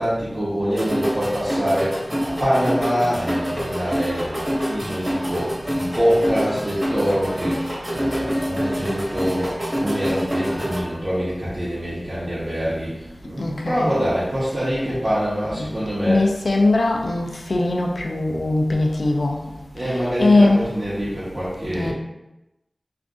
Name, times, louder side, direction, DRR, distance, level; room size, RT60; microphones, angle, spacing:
voice 1, 0.0-7.6 7.9-9.5 9.7-16.2 19.7-21.9, equal, 50° right, -10 dB, 0.8 m, -25 dB
sound 1, 0.7-10.8, equal, 20° right, 1.2 m, -26 dB
voice 2, 13.4-13.9 15.6-15.7 16.1-19.4 19.8-19.9 20.2-20.6 21.7-21.9, left 2 dB, 85° left, 0 dB, 0.4 m, -20 dB
2.5 x 2.5 x 3.6 m, 0.97 s
wide cardioid pair, 55°, 0 cm